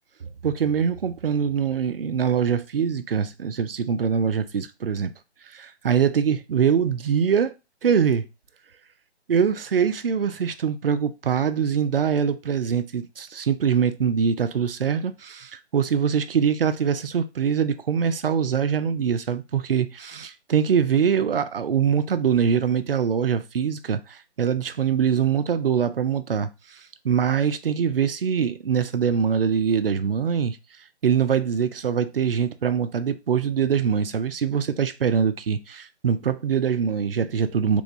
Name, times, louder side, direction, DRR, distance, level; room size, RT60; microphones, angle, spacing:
voice 1, 0.4-5.1 5.5-7.5 7.8-8.3 9.3-30.6 31.0-37.8, right 7 dB, 55° right, 0.5 m, -23 dB
3.4 x 3.2 x 2.6 m
figure-of-eight pair, 155°, 34 cm